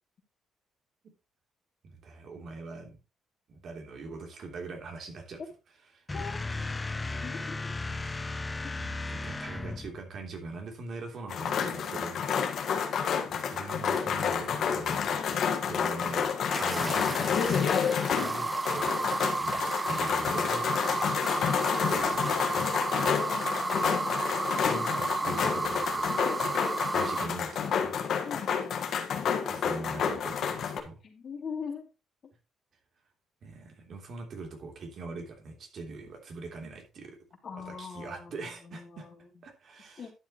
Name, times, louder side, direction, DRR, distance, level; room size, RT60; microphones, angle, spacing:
voice 1, 1.9-3.0 3.5-5.4 5.9-6.0 8.8-12.3 13.3-15.2 15.7-16.3 16.6-17.8 18.1-19.0 19.4-20.6 20.9-21.1 21.7-22.7 24.6-26.1 26.9-28.0 29.2-31.0 33.4-37.2 37.7-39.1 39.4-40.1, right 3 dB, 60° right, 3 dB, 3.1 m, -42 dB
voice 2, 6.1-6.6 7.1-7.7 8.6-8.7 17.9-18.3 21.5-21.7 23.1-23.8 24.4-24.8 28.2-29.2 31.0-31.9 37.4-39.3 40.0-40.1, left 6 dB, 50° left, 2 dB, 2.8 m, -43 dB
sound 1, 6.1-10.0, left 3 dB, 20° left, 0.6 m, -35 dB
sound 2, 11.3-30.8, left 7 dB, 65° left, 1.5 m, -29 dB
sound 3, 16.5-27.3, right 3 dB, 20° right, 0.7 m, -32 dB
11.5 x 7.3 x 3.1 m, 0.28 s
cardioid pair, 90°, 0 cm